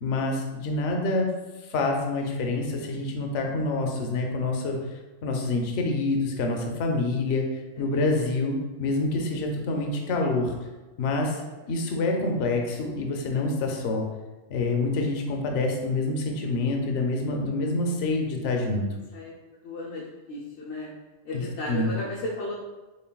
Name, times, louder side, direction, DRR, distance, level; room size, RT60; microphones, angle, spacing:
voice 1, 0.0-1.3 1.7-4.8 5.2-7.4 7.8-10.5 11.0-11.4 11.7-14.1 14.5-18.9 21.3-21.9, left 2 dB, 60° left, 2 dB, 0.8 m, -27 dB
voice 2, 19.6-20.9 21.2-22.5, left 1 dB, 80° left, -6 dB, 1.0 m, -34 dB
4.4 x 3.3 x 2.2 m, 1.2 s
omnidirectional pair, 1.4 m